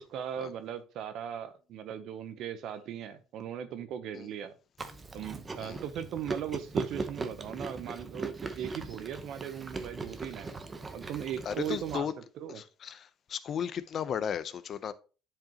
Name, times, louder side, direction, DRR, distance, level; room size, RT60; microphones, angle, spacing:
voice 1, 0.0-4.5 5.1-10.5 10.9-12.1 12.4-12.6, right 9 dB, 65° right, 0.7 m, -38 dB
Chewing mastication, 4.8-12.0, right 3 dB, 20° right, 0.8 m, -39 dB
voice 2, 11.4-12.1 12.5-14.9, left 8 dB, 45° left, 0.6 m, -35 dB
10.5 x 4.9 x 2.9 m
cardioid pair, 135°, 0 cm